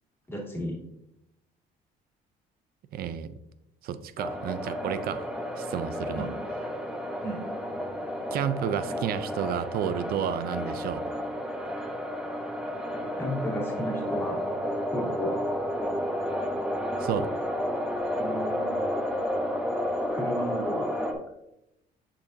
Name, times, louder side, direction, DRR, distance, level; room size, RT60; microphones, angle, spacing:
voice 1, 0.3-0.8 6.1-6.3 7.2-7.4 13.2-14.4 14.9-15.5 18.2-18.9 20.1-21.0, equal, 15° left, -1 dB, 2.2 m, -33 dB
voice 2, 2.9-3.3 3.8-5.2 5.6-6.3 8.3-11.0 17.0-17.3, right 9 dB, 65° right, 13 dB, 0.5 m, -31 dB
sound 1, 4.2-21.1, equal, 5° right, 1.0 m, -31 dB
6.9 x 5.8 x 2.7 m, 0.86 s
cardioid pair, 110°, 17 cm